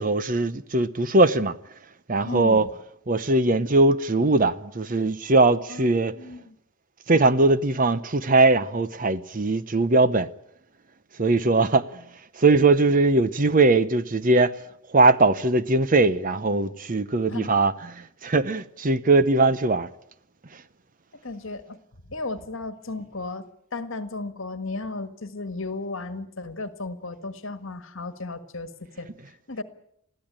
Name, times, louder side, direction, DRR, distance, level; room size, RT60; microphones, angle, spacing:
voice 1, 0.0-1.5 2.1-2.7 3.1-6.1 7.1-10.3 11.2-11.9 12.4-14.5 14.9-19.9, right 2 dB, 40° right, 0.7 m, -20 dB
voice 2, 2.3-2.7 5.7-6.6 11.6-11.8 17.3-17.5 21.2-21.8 22.1-23.4 23.7-28.7 29.0-29.1 29.5-29.6, left 3 dB, 60° left, 1.6 m, -34 dB
21.0 x 15.0 x 8.9 m
head